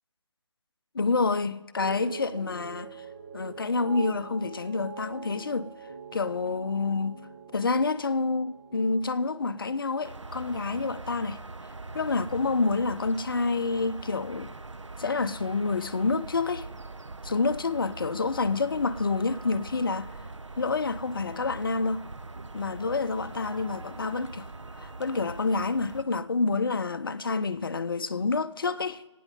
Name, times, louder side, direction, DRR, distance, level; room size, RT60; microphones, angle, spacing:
voice 1, 0.9-3.0 3.3-5.7 6.1-7.3 7.5-11.4 11.9-14.5 15.0-16.7 17.2-20.1 20.6-22.1 22.5-24.5 24.8-29.0, left 3 dB, 50° left, 0.6 m, -28 dB
sound 1, 1.8-12.2 12.5-13.0, right 5 dB, 30° right, 0.7 m, -45 dB
sound 2, 10.0-26.0, right 3 dB, 80° right, 0.6 m, -42 dB
26.5 x 9.3 x 3.7 m
figure-of-eight pair, 150°, 15 cm